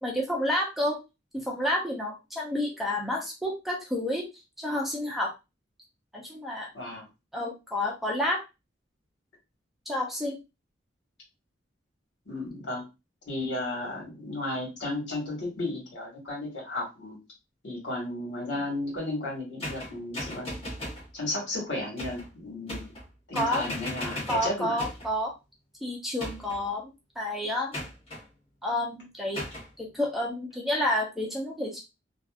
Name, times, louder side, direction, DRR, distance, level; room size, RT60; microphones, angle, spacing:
voice 1, 0.0-1.0 1.5-4.2 4.6-5.3 6.1-6.7 7.3-8.4 9.9-10.4 23.3-23.6 24.3-25.3 25.8-26.9 27.2-27.7 28.6-29.4 29.8-31.8, left 1 dB, ahead, -2 dB, 0.6 m, -29 dB
voice 2, 6.7-7.1 12.2-12.9 13.2-17.2 17.6-20.5 21.1-22.9 23.3-24.8, left 2 dB, 75° left, -3 dB, 1.7 m, -34 dB
sound 1, 19.6-21.1 22.0-22.3 22.7-23.1 23.3-25.1 26.2-26.7 27.7-28.2 29.3-29.7, left 1 dB, 35° left, 1.1 m, -37 dB
2.9 x 2.5 x 2.4 m, 0.25 s
head